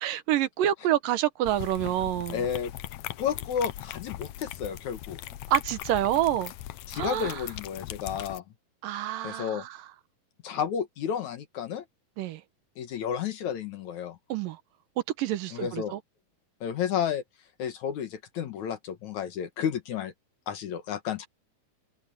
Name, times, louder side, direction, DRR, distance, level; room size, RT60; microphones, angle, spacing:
voice 1, 0.0-2.5 5.5-6.5 6.9-7.4 8.8-9.8 12.2-12.4 14.3-14.6 15.2-16.0, right 12 dB, 75° right, 2.6 m, -27 dB
sound 1, 1.4-8.4, left 13 dB, 80° left, 1.5 m, -39 dB
voice 2, 2.3-2.7 3.2-5.2 6.9-8.4 9.2-9.7 10.4-11.8 12.8-14.2 15.5-15.9 16.6-17.2 17.6-20.1 20.5-21.3, left 8 dB, 60° left, 2.4 m, -31 dB
omnidirectional pair, 4.1 m